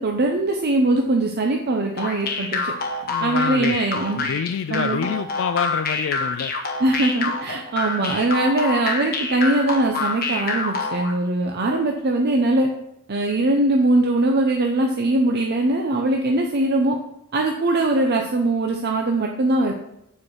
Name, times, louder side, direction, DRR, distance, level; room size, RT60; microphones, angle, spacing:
voice 1, 0.0-2.7 3.2-4.3 4.7-5.1 6.8-12.7 13.1-17.0 17.3-19.8, right 2 dB, 50° right, 2 dB, 0.7 m, -21 dB
sound 1, 2.0-11.1, left 4 dB, 45° left, 1.1 m, -26 dB
voice 2, 3.0-3.8 4.1-6.5, left 7 dB, 60° left, 11 dB, 0.3 m, -27 dB
8.6 x 4.6 x 4.7 m, 0.79 s
head